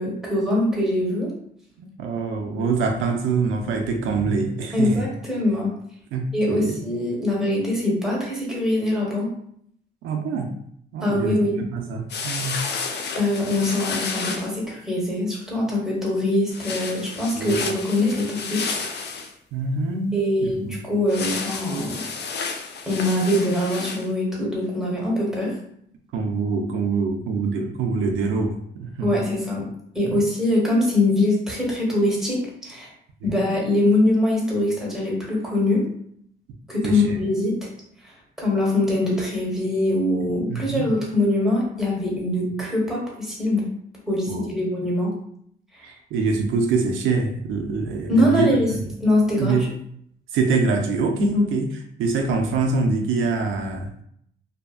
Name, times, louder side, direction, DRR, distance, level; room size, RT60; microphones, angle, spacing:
voice 1, 0.0-1.3 2.5-2.7 4.7-5.8 6.3-9.3 11.0-11.7 13.1-18.7 20.1-22.0 22.9-25.6 29.0-29.7 29.9-32.9 33.2-35.9 36.7-37.6 38.4-43.7 44.1-45.1 48.1-49.7 51.2-51.4, left 1 dB, ahead, -5 dB, 1.2 m, -23 dB
voice 2, 1.8-5.1 6.1-6.8 10.0-10.5 10.9-11.4 11.7-12.6 17.4-17.6 19.5-20.8 26.1-29.1 33.2-33.4 36.8-37.2 40.5-40.9 44.3-44.5 45.8-48.9 49.3-49.7 50.3-51.7 52.0-54.0, right 4 dB, 85° right, 3 dB, 0.4 m, -25 dB
sound 1, 12.1-14.5 16.5-19.3 21.1-24.1, left 5 dB, 60° left, 0.4 m, -31 dB
2.7 x 2.2 x 2.4 m, 0.68 s
cardioid pair, 90°, 20 cm